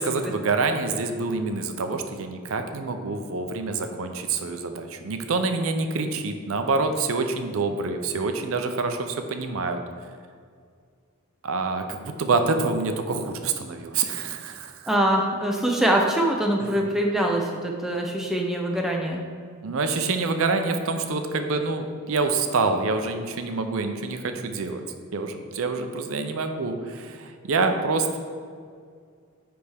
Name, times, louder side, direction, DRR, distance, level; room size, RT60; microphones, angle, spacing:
voice 1, 0.0-9.8 11.4-14.9 16.6-16.8 19.6-24.8 25.1-28.2, right 3 dB, 65° right, 6 dB, 0.5 m, -26 dB
voice 2, 14.9-19.2, right 1 dB, ahead, 0 dB, 0.4 m, -23 dB
9.5 x 3.5 x 3.4 m, 2.1 s
head